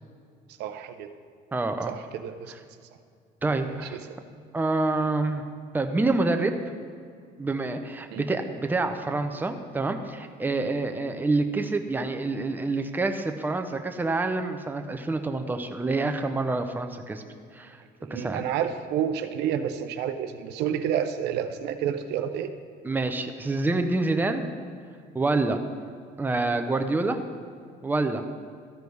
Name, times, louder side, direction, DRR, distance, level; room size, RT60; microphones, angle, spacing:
voice 1, 0.6-1.1 1.9-2.5 3.7-4.2 8.1-8.2 18.0-22.5, right 9 dB, 85° right, 9 dB, 0.6 m, -30 dB
voice 2, 1.5-2.0 3.4-4.0 4.5-5.4 5.7-6.5 7.4-17.2 17.5-17.8 18.1-18.4 22.8-24.5 25.1-25.6 26.2-27.2 27.8-28.2, right 3 dB, 10° right, 6 dB, 0.6 m, -27 dB
13.5 x 5.1 x 4.7 m, 2.2 s
cardioid pair, 110°, 17 cm